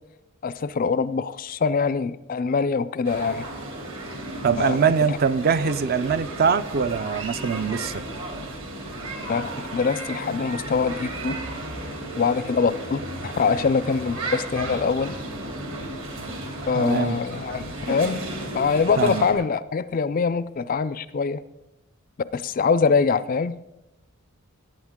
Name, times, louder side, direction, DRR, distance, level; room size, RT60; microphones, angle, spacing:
voice 1, 0.4-3.5 4.6-4.8 5.1-5.2 9.3-11.4 12.2-15.1 16.7-18.3 18.5-21.4 22.3-23.6, left 5 dB, 40° left, 17 dB, 0.3 m, -24 dB
sound 1, 3.0-19.3, right 1 dB, 60° right, 2.6 m, -34 dB
voice 2, 4.4-8.0 16.7-17.2 19.0-19.2, right 6 dB, 40° right, 14 dB, 0.4 m, -23 dB
18.0 x 9.0 x 3.6 m, 0.94 s
head